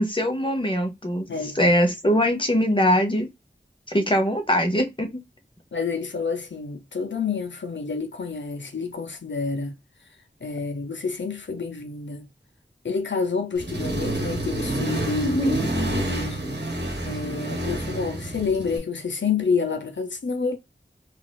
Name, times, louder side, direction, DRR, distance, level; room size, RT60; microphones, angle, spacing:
voice 1, 0.0-1.2 1.6-3.3 3.9-5.1 15.2-15.7, equal, 25° left, 0.9 m, -22 dB
voice 2, 1.3-1.6 5.7-9.8 10.4-12.3 12.8-15.4 15.8-16.4 17.0-20.6, left 5 dB, 85° left, 0.6 m, -28 dB
Accelerating revving vroom, 13.6-18.8, right 1 dB, 70° right, 1.1 m, -28 dB
4.0 x 2.4 x 2.3 m
wide cardioid pair, 40°, 18 cm